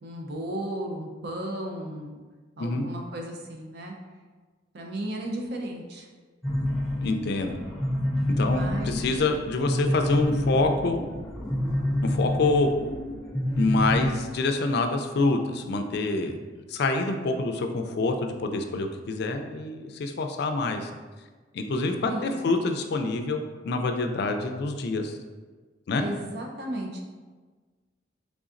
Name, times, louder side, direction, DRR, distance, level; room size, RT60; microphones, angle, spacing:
voice 1, 0.0-2.2 2.6-3.9 4.7-6.1 8.4-9.0 22.1-22.3 26.0-27.0, right 1 dB, 60° right, 1 dB, 0.6 m, -34 dB
sound 1, 6.4-14.1, left 1 dB, ahead, 0.7 m, -28 dB
voice 2, 7.0-7.5 8.4-11.0 12.0-12.7 13.6-16.4 16.7-20.9 21.5-25.1 25.9-26.0, left 3 dB, 60° left, 5 dB, 0.4 m, -26 dB
3.9 x 3.4 x 2.5 m, 1.4 s
head